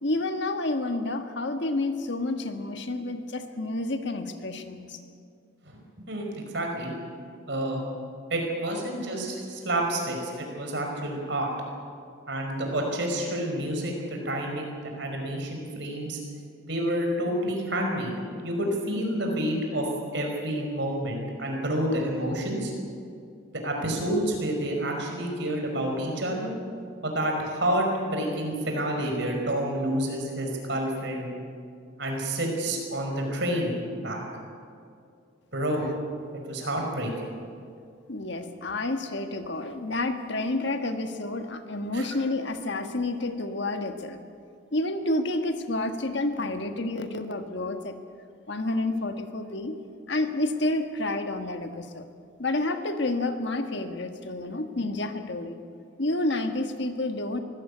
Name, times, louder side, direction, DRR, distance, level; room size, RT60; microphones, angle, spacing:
voice 1, 0.0-5.0 38.1-44.2 44.7-47.9 48.5-49.8 50.1-52.0 52.4-55.6 56.0-57.4, left 2 dB, 55° left, 7 dB, 1.5 m, -29 dB
voice 2, 6.1-6.9 7.5-7.8 8.3-11.5 12.3-16.2 16.6-18.1 18.4-19.9 20.1-22.7 23.6-26.5 27.0-31.3 32.0-34.2 35.5-35.8 36.3-37.1 41.9-42.1, right 1 dB, 55° right, 1 dB, 5.2 m, -29 dB
23.5 x 16.5 x 8.4 m, 2.4 s
head